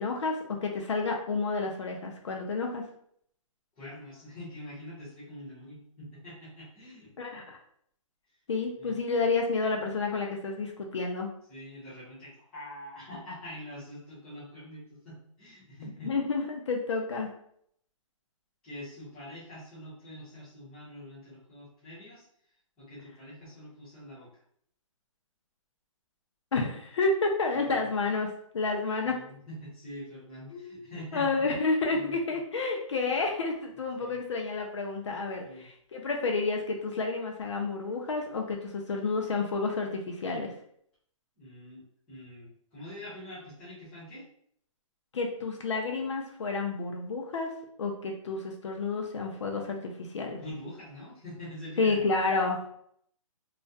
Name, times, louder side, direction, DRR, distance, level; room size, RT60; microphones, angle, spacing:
voice 1, 0.0-2.8 7.2-7.6 8.5-11.3 16.0-17.3 26.5-28.3 28.5-29.2 30.5-30.9 31.1-40.5 45.1-47.5 47.8-50.4 51.8-52.6, left 3 dB, 55° left, 1 dB, 0.4 m, -30 dB
voice 2, 3.7-7.1 8.8-9.0 11.5-16.1 18.6-22.3 22.8-24.4 27.5-27.9 29.0-31.5 31.9-32.2 34.0-34.1 35.4-35.6 41.4-44.2 50.4-52.0, left 1 dB, 5° left, -13 dB, 0.6 m, -45 dB
2.3 x 2.1 x 2.5 m, 0.66 s
hypercardioid pair, 175°, 18 cm